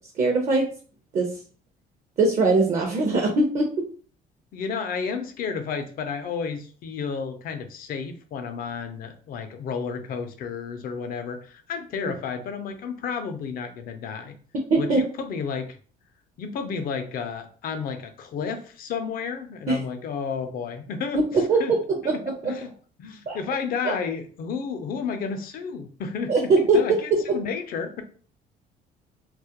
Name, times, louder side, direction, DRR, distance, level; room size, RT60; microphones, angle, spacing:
voice 1, 0.2-0.7 1.1-1.3 2.2-3.8 12.0-12.1 14.7-15.0 19.7-19.8 21.1-22.5 23.3-23.4 23.8-23.9 26.3-26.8 27.1-27.2, right 3 dB, 45° right, 1 dB, 0.6 m, -21 dB
voice 2, 4.5-14.4 14.8-15.8 16.4-21.7 22.1-22.7 23.0-28.0, left 6 dB, 60° left, 7 dB, 0.5 m, -32 dB
2.3 x 2.1 x 2.8 m, 0.42 s
cardioid pair, 110°, 17 cm